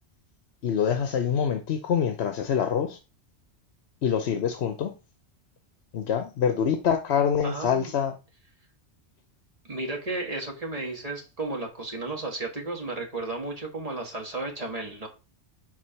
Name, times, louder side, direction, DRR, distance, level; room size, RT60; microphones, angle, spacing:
voice 1, 0.6-3.0 4.0-4.9 5.9-8.1, left 7 dB, 65° left, 0.9 m, -25 dB
voice 2, 7.4-7.9 9.6-15.1, right 2 dB, 35° right, 1.7 m, -33 dB
4.8 x 4.5 x 5.6 m
omnidirectional pair, 1.2 m